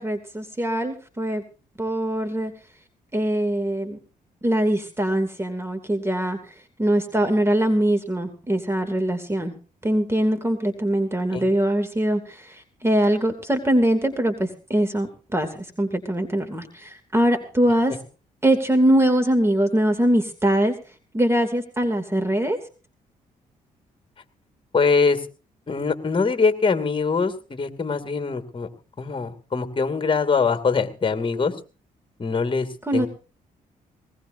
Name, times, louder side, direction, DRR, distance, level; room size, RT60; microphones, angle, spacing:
voice 1, 0.0-1.4 1.8-2.5 3.1-4.0 4.4-6.5 6.8-9.5 9.8-17.9 18.4-20.7 21.1-22.6 32.9-33.1, right 1 dB, 15° right, 7 dB, 2.7 m, -22 dB
voice 2, 24.7-25.2 25.7-28.7 29.0-31.5 32.2-32.7 32.9-33.1, left 4 dB, 35° left, 9 dB, 2.6 m, -23 dB
20.0 x 20.0 x 2.7 m, 0.35 s
cardioid pair, 75°, 15 cm